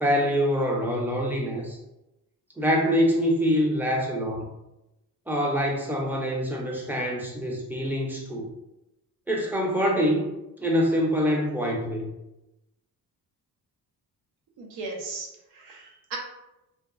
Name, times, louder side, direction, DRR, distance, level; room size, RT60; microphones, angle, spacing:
voice 1, 0.0-1.8 2.6-4.5 5.3-8.5 9.3-10.3 10.6-12.1, equal, 5° right, -1 dB, 0.4 m, -25 dB
voice 2, 14.6-16.2, right 3 dB, 80° right, 0 dB, 0.7 m, -37 dB
2.8 x 2.1 x 2.4 m, 0.93 s
cardioid pair, 130°, 38 cm